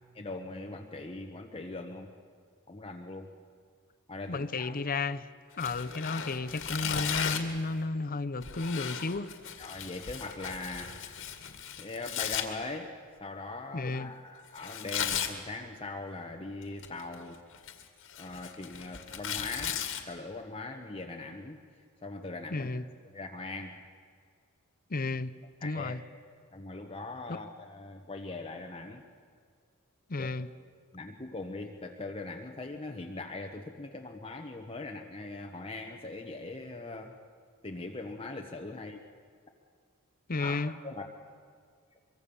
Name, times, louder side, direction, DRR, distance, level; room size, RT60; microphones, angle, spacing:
voice 1, 0.1-2.1 2.7-3.3 4.1-4.8 9.6-11.0 11.8-17.4 18.2-21.6 22.0-22.7 23.1-23.8 25.6-26.0 26.5-29.0 30.2-30.3 30.9-37.2 37.6-39.0 40.4-41.1, left 2 dB, 25° left, 1.2 m, -41 dB
voice 2, 4.3-5.3 5.6-9.3 13.7-14.1 22.5-22.8 24.9-25.3 25.6-26.0 27.3-27.4 30.1-30.5 40.3-40.7, left 3 dB, 40° left, 0.8 m, -32 dB
Tearing, 5.5-7.6 8.4-12.4 14.6-15.3 16.6-17.1 17.5-20.0, left 8 dB, 65° left, 2.1 m, -36 dB
24.0 x 23.5 x 7.1 m
head